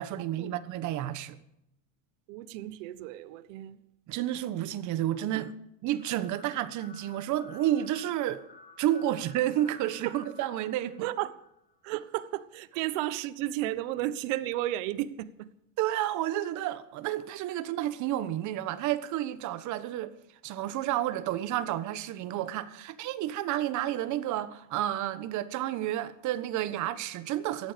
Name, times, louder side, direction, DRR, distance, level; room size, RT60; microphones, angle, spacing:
voice 1, 0.0-1.4 4.1-5.5 5.8-8.4 8.8-11.0 15.8-20.1 20.4-27.7, right 13 dB, 45° right, 1.4 m, -31 dB
voice 2, 2.3-3.8 5.3-5.5 10.0-10.2 11.0-11.4 11.8-15.5, right 15 dB, 65° right, 1.2 m, -33 dB
sound 1, 6.0-12.1, left 4 dB, 25° left, 3.3 m, -54 dB
18.0 x 14.0 x 5.2 m
supercardioid pair, 130°, 40 cm